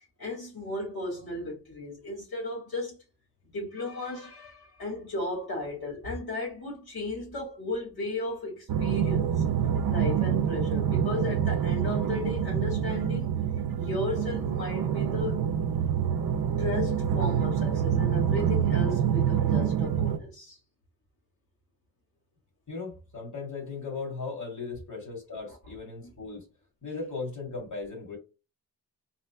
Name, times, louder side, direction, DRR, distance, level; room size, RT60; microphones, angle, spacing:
voice 1, 0.0-3.0 3.4-9.4 9.9-13.4 13.8-15.4 16.6-20.6 25.5-25.6, left 2 dB, 80° left, 2.0 m, -35 dB
sound 1, 8.7-20.2, right 8 dB, 70° right, 0.5 m, -26 dB
voice 2, 22.7-26.5 26.8-28.2, left 4 dB, 55° left, 2.3 m, -37 dB
4.1 x 2.2 x 4.2 m
wide cardioid pair, 90°, 36 cm